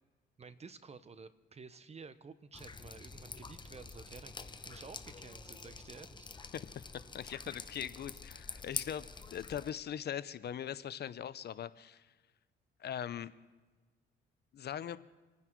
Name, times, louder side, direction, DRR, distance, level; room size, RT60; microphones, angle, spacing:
voice 1, 0.4-6.3, right 5 dB, 30° right, 13 dB, 1.0 m, -52 dB
Drip, 2.5-9.7, left 4 dB, 25° left, 0.9 m, -46 dB
voice 2, 6.5-12.1 12.8-13.3 14.5-15.0, left 9 dB, 55° left, 15 dB, 0.7 m, -41 dB
27.0 x 9.8 x 4.6 m, 1.2 s
cardioid pair, 90°, 20 cm